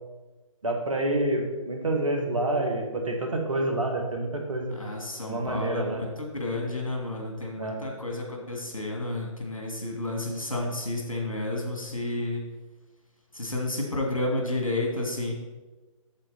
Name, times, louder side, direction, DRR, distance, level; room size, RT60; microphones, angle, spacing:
voice 1, 0.6-4.8 5.3-6.0 7.6-7.8, right 1 dB, 70° right, 2 dB, 1.9 m, -28 dB
voice 2, 4.7-12.4 13.3-15.3, left 2 dB, 75° left, 0 dB, 2.3 m, -31 dB
8.2 x 7.5 x 4.1 m, 1.2 s
figure-of-eight pair, 135°, 17 cm